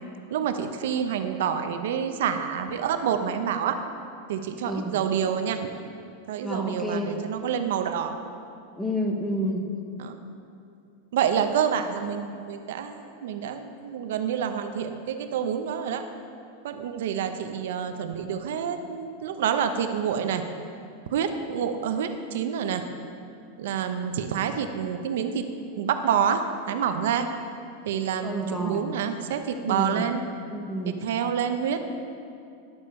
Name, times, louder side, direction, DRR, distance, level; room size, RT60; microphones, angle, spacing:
voice 1, 0.3-3.8 4.3-5.6 6.3-8.1 10.0-10.2 11.1-12.9 13.2-16.0 16.6-20.4 21.1-22.8 23.6-25.4 25.8-27.3 27.9-30.2 31.0-31.8, right 8 dB, 65° right, 8 dB, 0.6 m, -27 dB
voice 2, 4.6-5.0 6.4-7.1 8.8-9.6 28.2-28.9 29.7-30.1 30.5-31.0, equal, 5° left, 1 dB, 0.6 m, -29 dB
10.5 x 6.8 x 4.3 m, 2.5 s
supercardioid pair, 180°, 0 cm